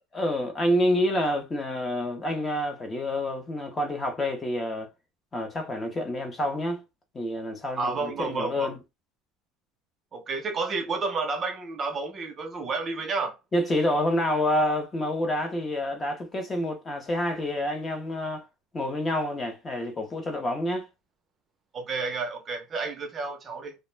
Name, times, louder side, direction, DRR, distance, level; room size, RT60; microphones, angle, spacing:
voice 1, 0.1-4.9 5.3-6.8 7.1-8.8 13.5-18.5 18.7-20.9, left 1 dB, 20° left, 0.6 m, -28 dB
voice 2, 7.8-8.7 10.1-13.4 21.7-23.8, right 4 dB, 30° right, 0.5 m, -31 dB
2.3 x 2.0 x 3.1 m
cardioid pair, 150°, 0 cm